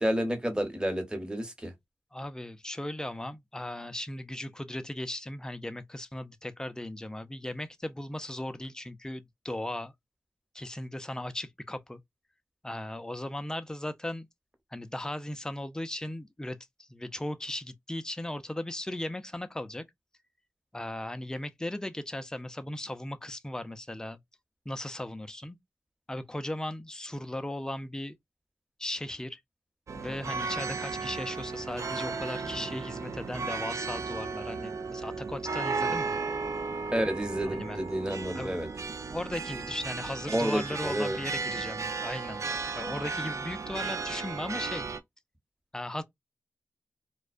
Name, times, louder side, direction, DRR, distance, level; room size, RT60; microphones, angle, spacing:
voice 1, 0.0-1.7 36.9-38.7 40.3-41.2, equal, 15° right, 1.1 m, -30 dB
voice 2, 2.1-9.9 10.5-12.0 12.6-14.3 14.7-19.8 20.7-24.2 24.7-25.6 26.1-28.2 28.8-29.4 30.0-36.2 37.4-37.8 38.3-38.6 39.0-42.4 42.7-44.9 45.7-46.0, left 1 dB, 10° left, 0.4 m, -37 dB
sound 1, 29.9-45.0, right 4 dB, 60° right, 0.4 m, -35 dB
2.3 x 2.2 x 2.4 m
cardioid pair, 45°, 6 cm